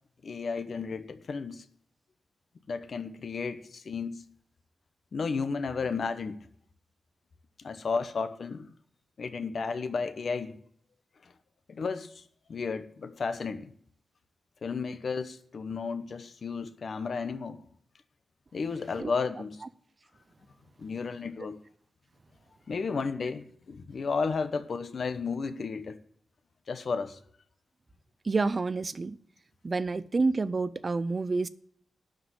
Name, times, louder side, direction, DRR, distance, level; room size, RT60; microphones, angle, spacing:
voice 1, 0.2-1.6 2.7-4.3 5.1-6.4 7.6-8.7 9.2-10.6 11.7-12.2 12.5-13.7 14.6-17.6 18.5-19.6 20.8-21.6 22.7-26.0 26.7-27.2, left 5 dB, 50° left, 1.0 m, -33 dB
voice 2, 28.2-29.2 29.6-31.5, right 3 dB, 35° right, 0.5 m, -28 dB
12.0 x 5.1 x 8.0 m
wide cardioid pair, 150°, 0 cm